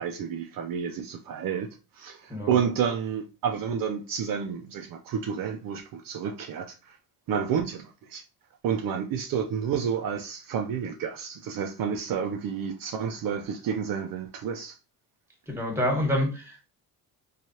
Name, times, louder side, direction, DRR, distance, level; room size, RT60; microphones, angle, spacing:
voice 1, 0.0-7.0 7.3-8.3 8.6-14.8, right 7 dB, 60° right, 0.5 m, -30 dB
voice 2, 15.5-16.7, left 1 dB, 5° right, 1.3 m, -27 dB
3.1 x 2.3 x 2.7 m
supercardioid pair, 80°, 39 cm